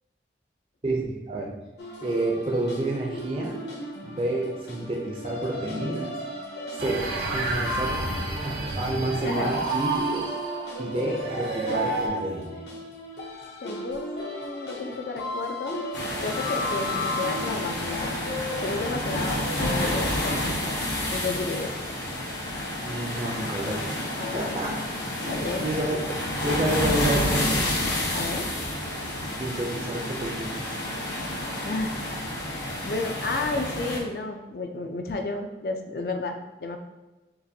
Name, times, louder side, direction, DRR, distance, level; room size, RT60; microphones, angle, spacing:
voice 1, 0.8-1.6 2.0-3.6 4.0-6.2 6.7-8.0 8.4-10.3 10.8-12.6 22.8-24.1 24.3-24.8 25.2-26.2 26.4-27.7 29.4-30.7, right 1 dB, 30° right, -2 dB, 0.5 m, -29 dB
sound 1, 1.8-20.5, left 2 dB, 70° left, 0.8 m, -36 dB
sound 2, 6.8-12.1, right 3 dB, 75° right, 1.3 m, -30 dB
voice 2, 9.2-9.6 13.6-15.8 16.2-18.1 18.6-20.6 21.1-21.8 24.2-24.6 25.3-25.7 28.1-28.5 31.6-32.0 32.9-36.8, left 3 dB, 55° left, 4 dB, 0.5 m, -32 dB
sound 3, 15.9-34.0, left 1 dB, 90° left, 1.1 m, -29 dB
6.7 x 2.5 x 2.7 m, 1.1 s
head